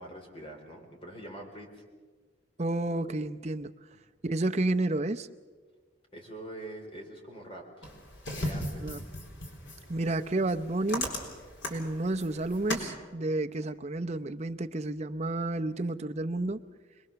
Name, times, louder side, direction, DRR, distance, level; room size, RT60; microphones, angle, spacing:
voice 1, 0.0-1.8 6.1-7.9 8.3-9.2, right 1 dB, 30° left, 2 dB, 4.0 m, -45 dB
voice 2, 2.6-3.7 4.2-5.3 8.8-9.0 9.9-11.1 11.7-16.6, right 2 dB, 35° right, 7 dB, 0.7 m, -30 dB
sound 1, 7.8-12.9, left 1 dB, 75° left, 4.0 m, -37 dB
26.0 x 20.5 x 6.9 m, 1.4 s
head